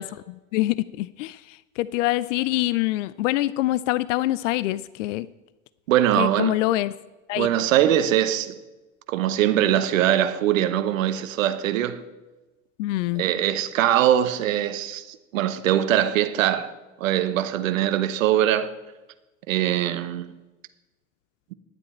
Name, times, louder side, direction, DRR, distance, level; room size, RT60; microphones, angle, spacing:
voice 1, 0.0-5.3 6.2-6.9 7.3-7.5 12.8-13.2, left 16 dB, 70° left, 0.5 m, -25 dB
voice 2, 5.9-6.5 7.3-8.5 9.1-12.0 13.2-16.7 17.0-18.7 19.5-20.3, right 11 dB, 75° right, 1.0 m, -22 dB
12.0 x 9.9 x 4.3 m
hypercardioid pair, 80°, 40 cm